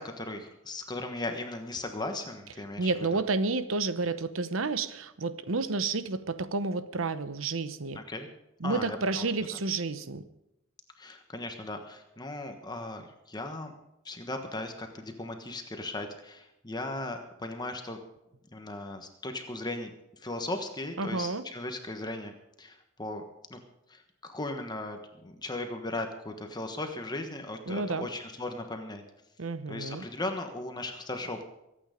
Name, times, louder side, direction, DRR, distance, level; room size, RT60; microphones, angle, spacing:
voice 1, 0.0-3.2 7.9-8.3 8.6-9.2 11.0-13.7 14.0-18.0 18.5-19.9 20.2-23.2 23.5-23.6 23.9-29.0 29.7-31.4, left 2 dB, 20° left, 5 dB, 1.3 m, -37 dB
voice 2, 2.8-8.0 8.6-10.2 21.0-21.5 27.7-28.1 29.4-30.1, right 3 dB, 90° right, 13 dB, 0.9 m, -30 dB
23.5 x 8.9 x 5.1 m, 0.88 s
head